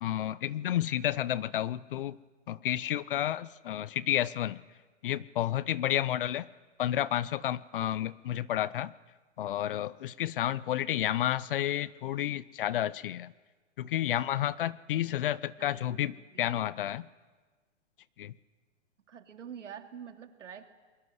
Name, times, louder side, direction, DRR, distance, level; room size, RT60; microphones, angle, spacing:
voice 1, 0.0-2.2 2.5-4.6 5.0-6.5 6.8-8.9 9.4-13.3 13.8-17.1 18.2-18.3, left 12 dB, 45° left, 20 dB, 0.7 m, -31 dB
voice 2, 15.6-16.6 19.1-20.7, right 8 dB, 75° right, 6 dB, 2.8 m, -47 dB
27.0 x 21.5 x 8.0 m, 1.3 s
hypercardioid pair, 150°, 37 cm